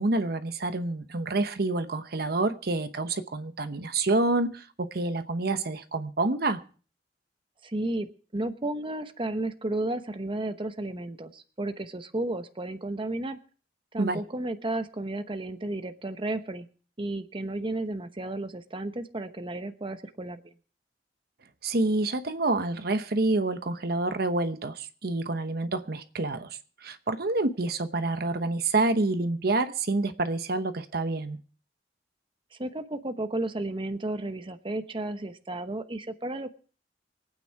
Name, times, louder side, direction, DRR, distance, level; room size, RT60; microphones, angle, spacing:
voice 1, 0.0-6.6 14.0-14.2 21.6-31.4, right 2 dB, 60° right, 1.0 m, -28 dB
voice 2, 7.6-13.4 13.9-16.7 17.0-20.4 32.6-36.5, right 2 dB, 30° right, 1.0 m, -33 dB
23.5 x 9.2 x 4.7 m
head